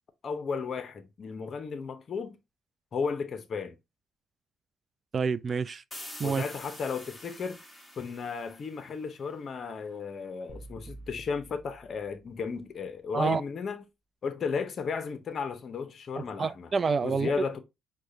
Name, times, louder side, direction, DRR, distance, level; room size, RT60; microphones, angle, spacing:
voice 1, 0.2-2.4 2.9-3.8 6.2-7.6 8.0-13.8 14.2-16.7 17.0-17.6, left 5 dB, 55° left, 0.6 m, -34 dB
voice 2, 5.1-5.8 6.2-6.4 13.1-13.4 16.2-17.5, right 5 dB, 45° right, 0.3 m, -28 dB
sound 1, 5.9-9.5, left 1 dB, 10° left, 1.2 m, -46 dB
sound 2, 10.5-12.7, right 2 dB, 25° right, 0.7 m, -49 dB
4.7 x 2.2 x 2.7 m
hypercardioid pair, 55°, 0 cm